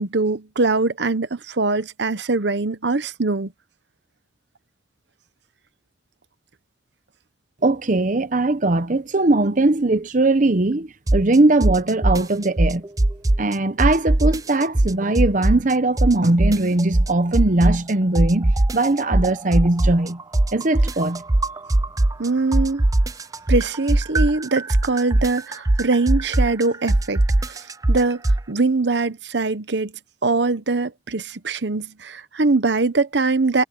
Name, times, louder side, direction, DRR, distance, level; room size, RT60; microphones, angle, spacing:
voice 1, 0.0-3.5 22.2-22.8 23.5-27.2 27.5-27.6 27.9-28.2 28.5-29.9 30.2-33.6, right 3 dB, 75° right, 1.0 m, -22 dB
voice 2, 7.6-12.8 13.4-20.2 20.5-21.2, right 2 dB, 45° right, 0.8 m, -20 dB
sound 1, 11.1-11.4 11.6-13.5 13.8-15.7 16.0-17.9 18.2-22.3 22.5-28.4, right 1 dB, 20° right, 0.5 m, -19 dB
head